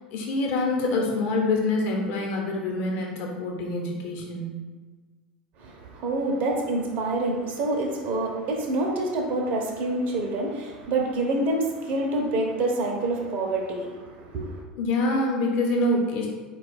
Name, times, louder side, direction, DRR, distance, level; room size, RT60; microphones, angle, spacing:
voice 1, 0.1-4.6 14.7-16.3, left 2 dB, 50° left, 0 dB, 1.0 m, -26 dB
voice 2, 5.6-14.6, right 2 dB, 45° right, 0 dB, 0.7 m, -27 dB
4.4 x 2.4 x 4.1 m, 1.4 s
figure-of-eight pair, 80°, 5 cm